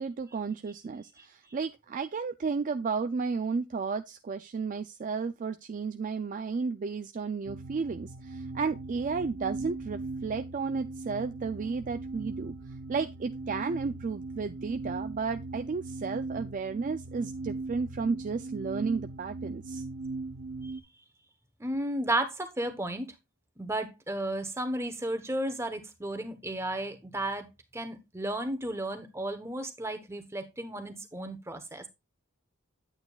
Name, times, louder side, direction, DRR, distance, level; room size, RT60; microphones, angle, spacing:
voice 1, 0.0-12.5 12.9-19.8, right 5 dB, 35° right, 0.3 m, -33 dB
sound 1, 7.5-20.8, right 3 dB, 75° right, 0.7 m, -39 dB
voice 2, 21.6-23.1 23.6-27.5 27.7-31.8, right 1 dB, 10° right, 1.0 m, -33 dB
8.8 x 8.7 x 2.4 m
head